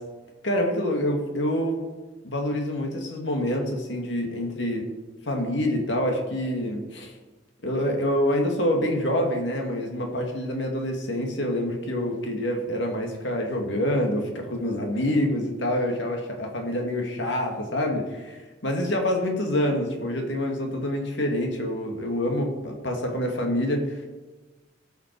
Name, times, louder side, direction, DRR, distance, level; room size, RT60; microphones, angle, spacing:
voice 1, 0.4-1.8 2.2-4.9 5.2-7.1 7.6-18.3 18.6-24.0, left 1 dB, 70° left, 2 dB, 2.1 m, -26 dB
17.0 x 5.8 x 4.6 m, 1.2 s
head